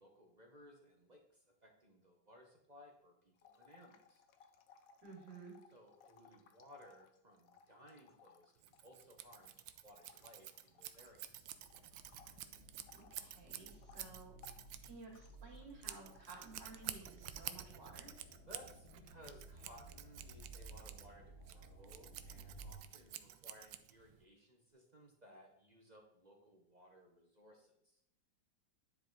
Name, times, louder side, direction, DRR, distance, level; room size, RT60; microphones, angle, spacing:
voice 1, 0.0-4.2 5.7-9.5 9.8-11.5 18.5-28.0, equal, 35° right, 1 dB, 0.7 m, -61 dB
sound 1, 3.4-11.3 11.6-17.2 17.5-17.9, left 6 dB, 65° left, 0.9 m, -65 dB
voice 2, 5.0-5.5 12.9-14.3 14.8-18.1, right 3 dB, 70° right, -2 dB, 3.3 m, -55 dB
Scissors, 8.6-24.2, right 12 dB, 85° right, 1.3 m, -51 dB
sound 2, 10.9-22.7, right 2 dB, 40° left, 1.5 m, -57 dB
10.0 x 4.9 x 3.9 m, 0.78 s
omnidirectional pair, 2.0 m